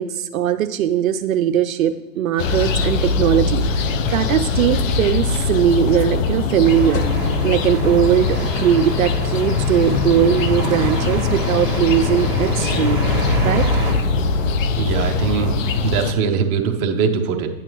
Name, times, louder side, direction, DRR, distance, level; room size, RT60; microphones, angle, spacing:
voice 1, 0.0-7.0 7.4-13.0 13.4-13.7, right 10 dB, 65° right, 9 dB, 0.6 m, -19 dB
sound 1, 2.4-16.1, left 4 dB, 60° left, 0.8 m, -21 dB
sound 2, 6.6-13.9, right 1 dB, ahead, 2.3 m, -27 dB
voice 2, 14.7-15.5 15.8-17.5, right 6 dB, 25° right, 3 dB, 0.8 m, -21 dB
9.7 x 8.9 x 3.0 m, 1.2 s
hypercardioid pair, 145°, 45 cm